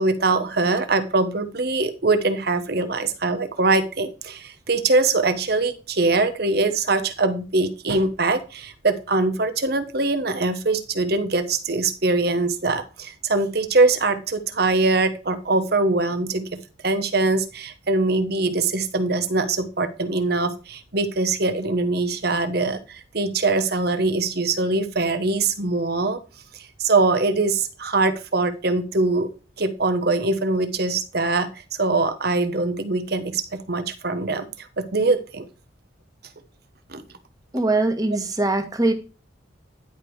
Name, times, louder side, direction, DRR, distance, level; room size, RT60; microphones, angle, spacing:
voice 1, 0.0-26.2 26.8-29.3 29.6-35.4 36.9-37.0, right 3 dB, 55° right, 9 dB, 1.2 m, -22 dB
voice 2, 37.5-38.9, right 2 dB, 20° right, 6 dB, 1.5 m, -22 dB
10.5 x 5.2 x 4.8 m, 0.32 s
head